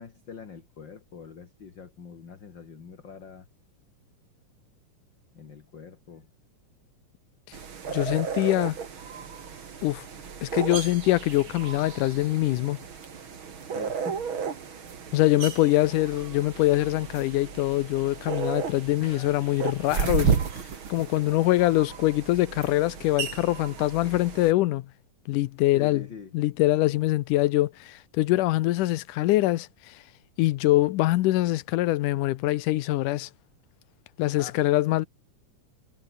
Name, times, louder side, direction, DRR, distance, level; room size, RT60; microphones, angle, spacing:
voice 1, 0.0-3.5 5.3-6.3 13.7-14.3 19.0-19.4 21.0-21.2 25.7-26.3 34.4-34.6, left 6 dB, 40° left, 2.6 m, -44 dB
sound 1, 7.5-24.5, right 6 dB, 45° right, 2.8 m, -33 dB
voice 2, 7.9-8.8 9.8-10.1 10.4-12.8 15.1-20.3 20.9-24.9 25.3-26.0 26.3-29.9 30.4-33.3 34.2-35.1, left 17 dB, 90° left, 2.3 m, -24 dB
omnidirectional pair, 3.6 m